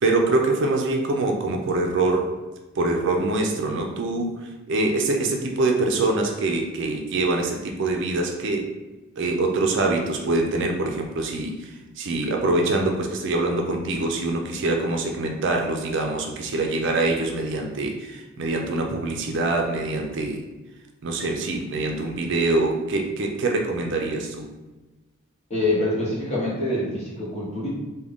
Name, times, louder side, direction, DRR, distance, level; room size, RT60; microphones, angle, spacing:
voice 1, 0.0-2.3 2.8-4.4 4.7-8.6 9.2-11.7 12.0-20.4 21.0-24.5, right 2 dB, 55° right, 2 dB, 0.4 m, -24 dB
voice 2, 25.5-27.7, left 1 dB, 30° left, -6 dB, 1.0 m, -25 dB
3.6 x 2.2 x 3.5 m, 1.1 s
head